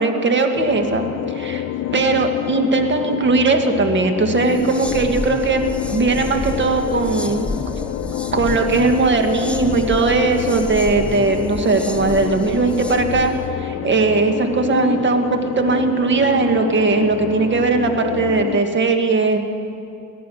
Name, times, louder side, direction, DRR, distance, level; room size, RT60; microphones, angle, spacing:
voice 1, 0.0-1.6 1.9-7.4 8.3-13.3 13.6-19.4, right 3 dB, 40° right, 5 dB, 1.6 m, -19 dB
sound 1, 0.5-18.6, left 12 dB, 60° left, 0.5 m, -28 dB
sound 2, 4.4-13.5, left 2 dB, 5° left, 0.8 m, -31 dB
18.5 x 12.0 x 6.3 m, 2.6 s
cardioid pair, 90°, 30 cm